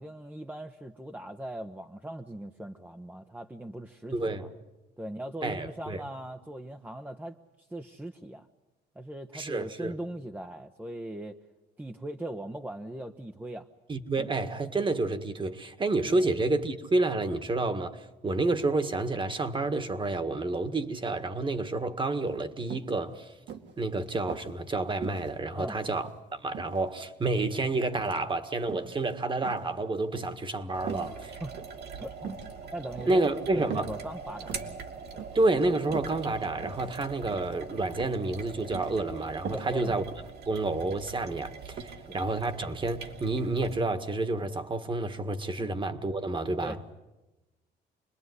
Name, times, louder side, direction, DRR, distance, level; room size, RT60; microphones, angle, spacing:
voice 1, 0.0-4.5 5.0-7.4 7.7-8.5 8.9-11.4 11.8-13.7 14.1-14.3 16.1-16.3 25.5-25.8 30.9-31.5 32.0-32.4 32.7-34.6 35.1-35.3 39.5-40.0 45.6-45.8 46.6-46.8, right 1 dB, 10° right, 1.0 m, -40 dB
voice 2, 4.1-4.5 5.4-6.0 9.3-9.9 13.9-23.3 23.8-31.4 33.1-33.9 35.4-40.0 40.5-46.8, right 2 dB, 25° right, 1.8 m, -29 dB
sound 1, 22.3-22.4 22.7-23.0 23.5-24.5 25.0-26.1 26.5-27.5 27.9-28.3 28.6-29.0 29.4-30.4 30.8-31.1 31.5-31.8 32.2-32.5 33.0-33.2 33.7-34.0 34.3-34.7 35.2-35.5 35.7-36.1 36.6-37.0 37.3-37.6 38.0-38.3 38.5-38.9 39.5-39.7 40.0-40.1, right 7 dB, 75° right, 2.7 m, -41 dB
sound 2, 30.7-43.8, right 5 dB, 60° right, 2.9 m, -43 dB
27.5 x 21.0 x 9.8 m
cardioid pair, 105°, 19 cm